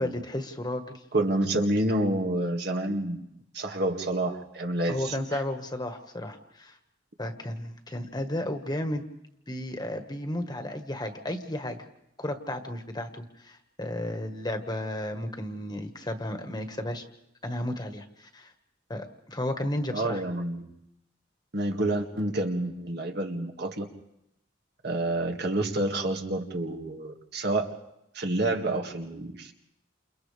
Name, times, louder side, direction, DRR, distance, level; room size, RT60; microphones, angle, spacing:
voice 1, 0.0-1.0 4.9-6.8 7.2-9.0 9.5-11.8 12.2-17.0 17.4-18.5 18.9-20.2, left 1 dB, 25° left, 6 dB, 1.6 m, -33 dB
voice 2, 1.1-3.3 3.5-5.4 19.9-20.7 21.5-23.9 24.8-27.7 28.1-29.5, right 1 dB, 65° right, 3 dB, 2.1 m, -28 dB
29.5 x 28.5 x 3.5 m, 0.81 s
head